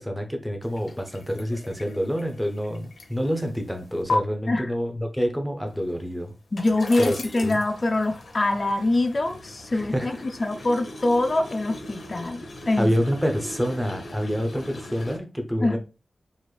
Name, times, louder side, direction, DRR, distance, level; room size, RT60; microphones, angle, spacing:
voice 1, 0.0-6.3 7.0-7.6 9.7-10.3 12.8-15.8, equal, 5° right, 0.7 m, -27 dB
sound 1, 0.6-4.2 5.7-15.2, left 2 dB, 65° left, 0.7 m, -38 dB
voice 2, 6.5-12.9 15.6-15.8, left 2 dB, 35° left, 0.5 m, -24 dB
4.1 x 2.5 x 3.2 m
wide cardioid pair, 120°, 0 cm